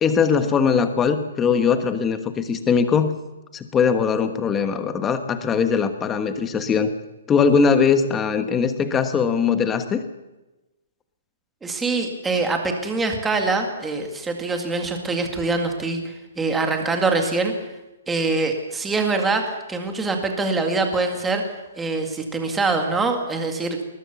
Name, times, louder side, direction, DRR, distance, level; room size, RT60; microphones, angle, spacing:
voice 1, 0.0-3.1 3.5-6.9 7.3-10.0, left 6 dB, 10° left, 9 dB, 1.2 m, -20 dB
voice 2, 11.6-17.5 18.1-21.4 21.8-23.8, right 3 dB, 5° right, 4 dB, 2.1 m, -24 dB
20.5 x 20.0 x 7.0 m, 1.1 s
hypercardioid pair, 175°, 0 cm